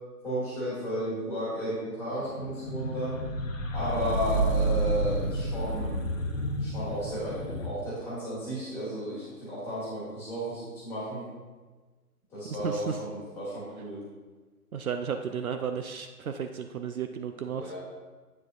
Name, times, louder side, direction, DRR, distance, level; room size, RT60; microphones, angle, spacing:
voice 1, 0.2-3.2 3.7-5.9 6.6-11.3 12.3-14.0 17.5-17.8, equal, 5° left, -10 dB, 2.1 m, -33 dB
sound 1, 2.2-7.7, right 1 dB, 55° left, 1.0 m, -30 dB
voice 2, 12.5-13.0 14.7-17.8, right 7 dB, 65° right, 7 dB, 0.5 m, -33 dB
8.3 x 6.7 x 2.5 m, 1.3 s
figure-of-eight pair, 150°, 47 cm